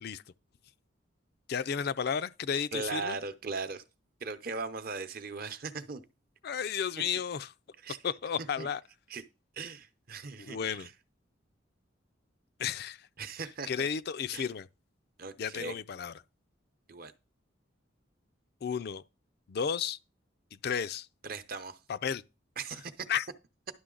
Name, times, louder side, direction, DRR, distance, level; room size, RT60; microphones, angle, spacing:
voice 1, 1.5-3.2 6.4-7.5 8.0-8.8 10.4-10.9 12.6-13.1 13.7-14.7 15.4-16.1 18.6-19.0 19.5-20.0 20.5-21.1 21.9-22.2 23.1-23.2, left 7 dB, 55° left, 0.4 m, -33 dB
voice 2, 2.7-3.8 4.2-6.0 7.8-8.0 8.4-8.7 9.1-9.2 9.5-10.9 13.2-13.9 14.3-14.5 15.2-15.8 16.9-17.1 21.2-21.8 22.6-23.1, right 4 dB, 50° right, 0.8 m, -39 dB
11.0 x 6.4 x 3.8 m
head